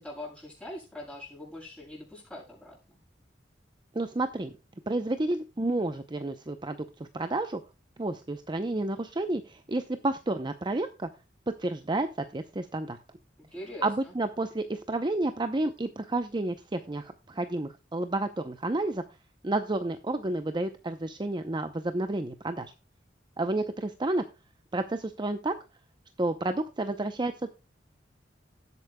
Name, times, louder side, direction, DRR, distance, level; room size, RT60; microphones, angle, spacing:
voice 1, 0.0-3.0 13.4-14.1, left 1 dB, 5° left, -5 dB, 7.2 m, -43 dB
voice 2, 3.9-4.5 4.9-7.6 8.0-11.1 11.5-13.0 13.8-19.0 19.4-22.7 23.4-24.2 24.7-25.5 26.2-27.3, right 2 dB, 25° right, 8 dB, 0.6 m, -30 dB
18.5 x 8.3 x 2.2 m, 0.30 s
head